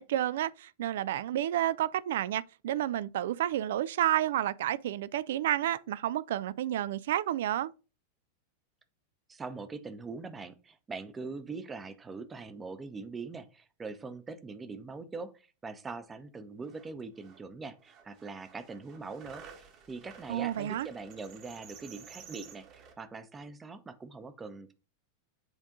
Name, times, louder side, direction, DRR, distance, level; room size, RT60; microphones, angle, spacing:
voice 1, 0.0-7.7 20.3-20.9, right 12 dB, 55° right, 0.3 m, -30 dB
voice 2, 9.3-24.7, right 4 dB, 15° right, 0.7 m, -42 dB
sound 1, 16.4-16.5 16.6-17.4 17.8-22.9, right 7 dB, 35° right, 1.3 m, -53 dB
8.0 x 3.5 x 3.7 m
figure-of-eight pair, 90°, 0 cm